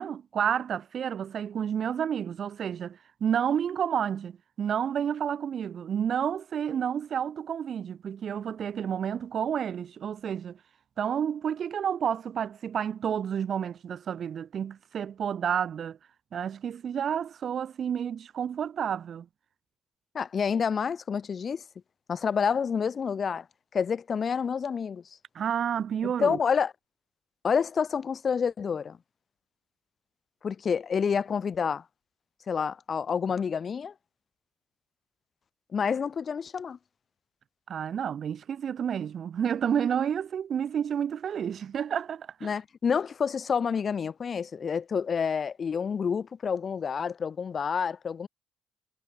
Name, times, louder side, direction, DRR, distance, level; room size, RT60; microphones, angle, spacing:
voice 1, 0.0-10.6 11.0-16.0 16.3-19.3 25.3-26.4 37.7-42.5, right 8 dB, 60° right, 0.7 m, -30 dB
voice 2, 20.1-21.6 22.1-23.4 23.7-25.0 26.2-26.7 27.4-29.0 30.4-31.8 32.5-33.9 35.7-36.8 42.4-48.3, left 6 dB, 50° left, 0.9 m, -28 dB
hypercardioid pair, 55°, 0 cm